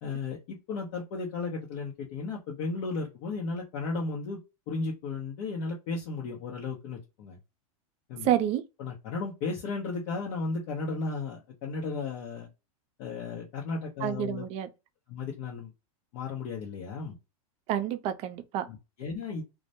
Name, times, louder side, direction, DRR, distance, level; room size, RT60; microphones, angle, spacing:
voice 1, 0.0-4.4 4.7-7.4 8.1-8.3 8.8-12.5 13.0-14.5 15.1-15.7 16.1-17.2 18.7-19.4, left 4 dB, 50° left, 0.8 m, -34 dB
voice 2, 8.2-8.6 14.0-14.7 17.7-18.7, right 11 dB, 35° right, 0.4 m, -28 dB
2.2 x 2.1 x 2.7 m
supercardioid pair, 130°, 18 cm